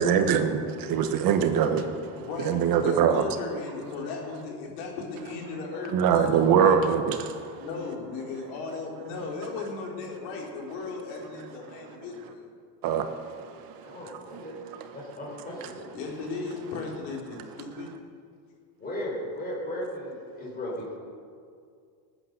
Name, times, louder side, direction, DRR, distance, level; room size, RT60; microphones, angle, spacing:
voice 1, 0.0-3.2 5.9-7.7 11.6-12.0 12.8-15.0 15.6-15.7, right 7 dB, 45° right, 1.4 m, -25 dB
voice 2, 2.2-6.8 7.6-12.5 15.9-17.9, left 4 dB, 75° left, 4.1 m, -36 dB
voice 3, 13.8-14.6 14.9-15.9 18.8-21.0, left 1 dB, 15° left, 4.3 m, -36 dB
19.5 x 9.1 x 6.7 m
cardioid pair, 150°, 50 cm